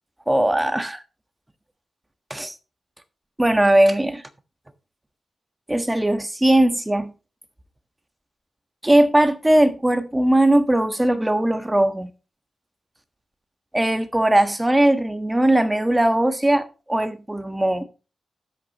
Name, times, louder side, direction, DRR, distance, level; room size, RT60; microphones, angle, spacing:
voice 1, 0.3-1.0 2.3-2.5 3.4-4.2 5.7-7.1 8.8-12.1 13.7-17.8, right 1 dB, 15° right, 1.5 m, -19 dB
12.5 x 8.4 x 3.1 m
cardioid pair, 80°, 0 cm